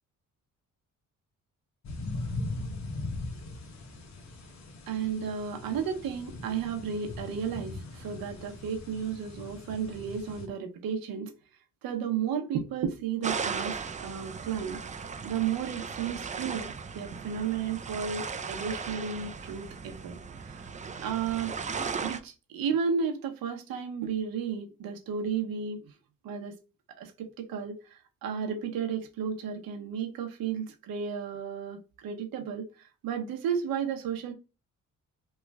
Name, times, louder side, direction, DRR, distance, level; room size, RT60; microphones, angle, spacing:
sound 1, 1.8-10.5, left 2 dB, 50° left, 0.8 m, -40 dB
voice 1, 4.9-11.3 11.8-14.8 15.2-20.7 21.0-21.5 22.0-25.9 26.2-26.6 27.0-34.3, right 7 dB, 85° right, 0.8 m, -33 dB
sound 2, 13.2-22.2, right 5 dB, 20° right, 0.4 m, -37 dB
3.1 x 2.3 x 3.4 m
cardioid pair, 75°, 34 cm